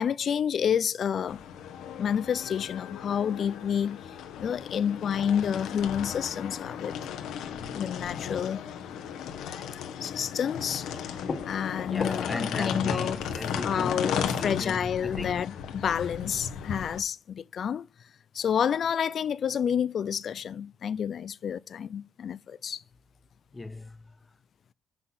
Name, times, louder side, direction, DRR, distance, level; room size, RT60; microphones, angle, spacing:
voice 1, 0.0-1.4 2.0-6.9 7.7-8.6 9.4-9.7 10.0-10.9 11.4-13.2 13.6-17.9 18.3-22.8, left 8 dB, 55° left, 0.4 m, -29 dB
sound 1, 1.3-17.0, left 8 dB, 85° left, 1.2 m, -36 dB
sound 2, 11.0-13.7, left 4 dB, 40° left, 1.5 m, -41 dB
voice 2, 11.9-15.6 23.5-24.2, left 3 dB, 20° left, 0.8 m, -37 dB
7.5 x 6.0 x 6.1 m
cardioid pair, 90°, 0 cm